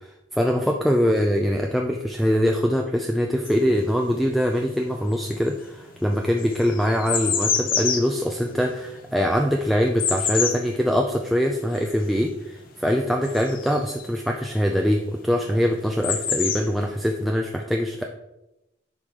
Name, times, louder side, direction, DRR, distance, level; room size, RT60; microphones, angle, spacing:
voice 1, 0.3-18.1, equal, ahead, 1 dB, 0.4 m, -23 dB
sound 1, 3.5-4.6 4.9-14.2 15.3-15.4 15.6-17.2, left 7 dB, 50° left, 1.0 m, -28 dB
9.8 x 4.9 x 3.7 m, 0.93 s
head